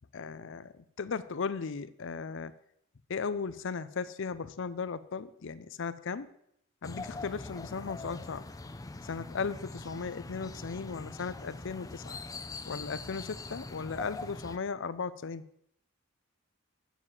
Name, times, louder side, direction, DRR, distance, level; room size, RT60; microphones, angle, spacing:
voice 1, 0.1-2.5 3.1-6.3 6.8-8.4 9.1-12.2 12.7-15.4, left 5 dB, 60° left, 16 dB, 0.5 m, -36 dB
sound 1, 6.8-14.6, left 2 dB, 15° left, 0.5 m, -43 dB
8.1 x 7.2 x 7.4 m, 0.74 s
head